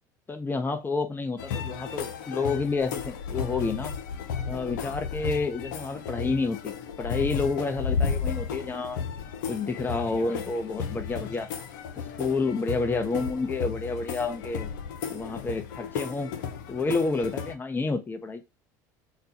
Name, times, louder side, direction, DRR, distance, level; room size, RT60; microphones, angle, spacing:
voice 1, 0.3-3.9 4.5-6.7 7.0-9.0 9.5-11.5 12.2-14.7 15.1-16.3 16.7-18.4, left 3 dB, 20° left, 0.8 m, -29 dB
sound 1, 1.4-17.5, left 6 dB, 90° left, 0.6 m, -34 dB
4.2 x 2.3 x 4.1 m
supercardioid pair, 95°, 10 cm